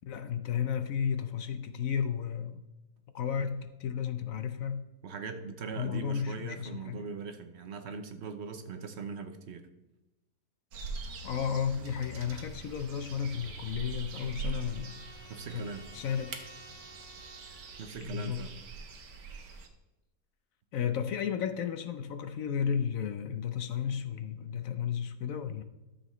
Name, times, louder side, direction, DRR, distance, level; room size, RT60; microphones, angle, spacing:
voice 1, 0.1-2.6 3.1-4.8 5.8-7.1 11.2-15.6 15.9-16.4 18.0-18.4 20.7-25.6, left 7 dB, 65° left, 9 dB, 0.9 m, -33 dB
voice 2, 5.0-9.7 15.3-15.8 17.8-18.5, right 5 dB, 55° right, 7 dB, 0.8 m, -40 dB
sound 1, 10.7-19.7, right 4 dB, 90° right, 1.6 m, -43 dB
Trumpet, 13.2-17.9, right 1 dB, 40° left, 3.7 m, -55 dB
12.5 x 7.0 x 3.1 m, 1.0 s
omnidirectional pair, 1.7 m